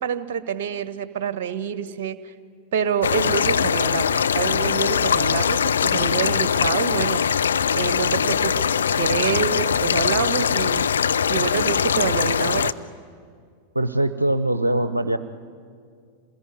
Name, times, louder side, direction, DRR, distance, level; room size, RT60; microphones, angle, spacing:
voice 1, 0.0-2.3 2.7-7.3 7.7-10.9 11.3-12.7, right 8 dB, 50° right, 14 dB, 1.2 m, -27 dB
sound 1, 3.0-12.7, left 7 dB, 70° left, 0.6 m, -21 dB
voice 2, 13.7-15.2, right 1 dB, 85° right, 11 dB, 0.7 m, -22 dB
27.5 x 20.0 x 9.6 m, 2.2 s
figure-of-eight pair, 90°, 0 cm